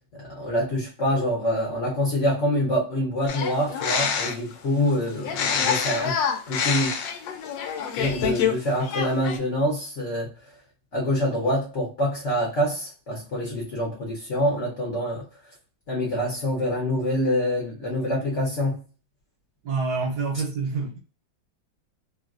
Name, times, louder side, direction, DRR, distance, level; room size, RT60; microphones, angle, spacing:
voice 1, 0.2-6.2 6.5-6.9 8.0-10.3 10.9-15.2 15.9-18.8, equal, 50° left, 1.0 m, -25 dB
sound 1, 3.3-4.5 5.2-8.5 8.8-9.4, left 7 dB, 75° left, 1.2 m, -26 dB
voice 2, 19.6-21.0, right 4 dB, 70° right, 1.1 m, -27 dB
3.1 x 2.4 x 2.4 m
omnidirectional pair, 2.2 m